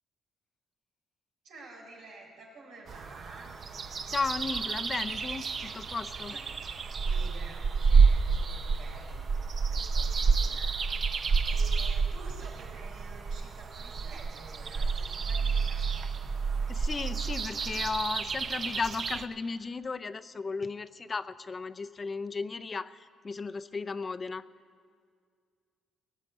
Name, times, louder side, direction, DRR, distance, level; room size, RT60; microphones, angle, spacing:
voice 1, 1.4-3.6 6.3-6.4 7.0-10.8 11.5-15.9, right 2 dB, 90° right, -2 dB, 4.2 m, -50 dB
sound 1, 2.9-19.3, right 5 dB, 50° right, 0.6 m, -29 dB
voice 2, 4.1-6.3 16.7-24.4, left 4 dB, 35° left, 13 dB, 0.5 m, -35 dB
18.0 x 7.3 x 9.3 m, 2.1 s
cardioid pair, 90°, 0 cm